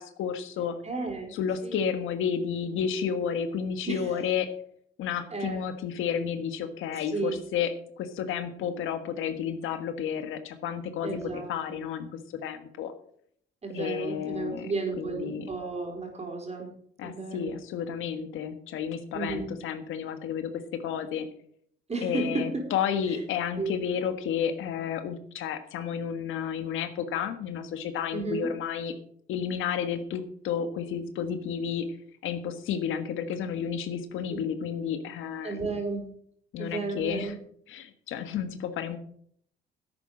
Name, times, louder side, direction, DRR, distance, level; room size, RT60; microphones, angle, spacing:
voice 1, 0.0-0.8 1.3-4.5 5.0-12.9 13.7-14.7 15.0-15.5 17.0-20.5 20.8-21.3 22.0-28.9 29.3-31.9 32.2-35.6 36.5-37.3 37.7-39.0, left 8 dB, 85° left, 9 dB, 1.5 m, -31 dB
voice 2, 0.8-1.3 1.6-1.9 3.8-4.2 5.3-5.6 6.9-7.4 11.0-11.8 13.6-16.7 17.0-17.5 19.1-19.5 21.9-22.6 23.1-23.2 23.6-23.8 28.1-28.5 34.3-34.4 35.4-36.2 36.6-37.4, right 3 dB, 35° right, 3 dB, 4.4 m, -33 dB
10.5 x 8.8 x 6.4 m, 0.63 s
cardioid pair, 90°, 20 cm